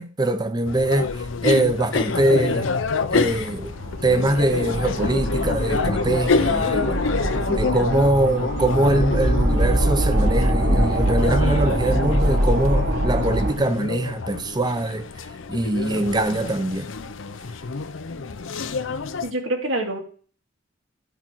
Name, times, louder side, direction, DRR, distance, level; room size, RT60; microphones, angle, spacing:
voice 1, 0.0-2.7 3.1-3.7 4.0-7.0 7.5-15.1 15.5-16.9, right 1 dB, 20° right, 0.7 m, -23 dB
sound 1, 0.6-19.3, left 4 dB, 90° left, 0.7 m, -27 dB
sound 2, 3.1-13.5, right 1 dB, 55° right, 2.4 m, -23 dB
voice 2, 19.2-20.0, right 1 dB, 90° right, 2.5 m, -25 dB
11.0 x 5.6 x 4.6 m
head